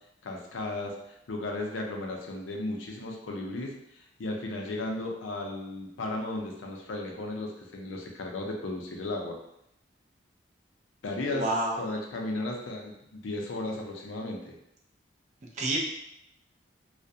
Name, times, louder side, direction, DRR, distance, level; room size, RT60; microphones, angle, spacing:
voice 1, 0.2-1.0 1.3-9.4 11.0-11.5 11.8-14.6, left 2 dB, 80° left, 1 dB, 0.5 m, -35 dB
voice 2, 11.3-11.8 15.6-15.8, right 2 dB, 40° right, -2 dB, 0.5 m, -28 dB
2.3 x 2.1 x 2.6 m, 0.79 s
head